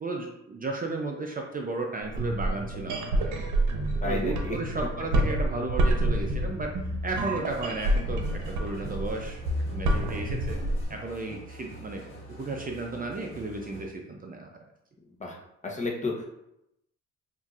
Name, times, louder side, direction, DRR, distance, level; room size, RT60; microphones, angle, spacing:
voice 1, 0.0-3.5 4.0-6.7 7.0-9.4 9.7-10.6 10.9-14.6, right 2 dB, 30° right, 1 dB, 0.5 m, -34 dB
sound 1, 2.0-10.8, right 1 dB, 75° right, 0.8 m, -28 dB
voice 2, 4.0-4.6 15.2-15.4 15.6-16.3, left 3 dB, 25° left, -1 dB, 0.9 m, -31 dB
sound 2, 7.3-13.9, right 1 dB, 40° left, 1.4 m, -45 dB
5.6 x 2.7 x 2.4 m, 0.82 s
cardioid pair, 90°, 30 cm